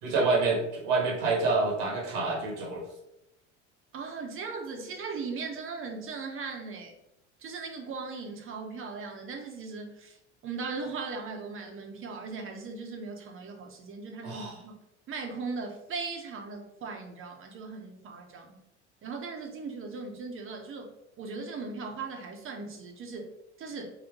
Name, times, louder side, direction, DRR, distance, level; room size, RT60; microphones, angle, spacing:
voice 1, 0.0-2.8 14.2-14.5, right 3 dB, 75° right, 0 dB, 1.2 m, -27 dB
voice 2, 3.9-6.9 7.4-10.2 10.4-14.7 15.1-18.6 19.0-23.3 23.6-23.9, right 4 dB, 35° right, 3 dB, 0.8 m, -38 dB
3.9 x 2.1 x 3.5 m, 0.84 s
supercardioid pair, 90°, 35 cm